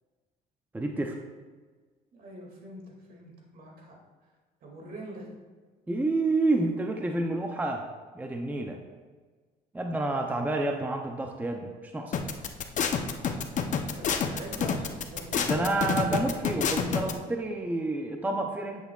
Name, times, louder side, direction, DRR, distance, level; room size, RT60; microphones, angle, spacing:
voice 1, 0.7-1.2 5.9-7.8 8.1-8.8 9.7-12.1 15.3-18.8, right 2 dB, 10° right, 3 dB, 0.6 m, -29 dB
voice 2, 2.1-4.0 4.6-5.3 13.6-15.4, right 1 dB, 60° right, -1 dB, 2.4 m, -44 dB
sound 1, 12.1-17.1, left 6 dB, 45° left, 0.7 m, -27 dB
9.8 x 8.0 x 2.4 m, 1.4 s
cardioid pair, 110°, 17 cm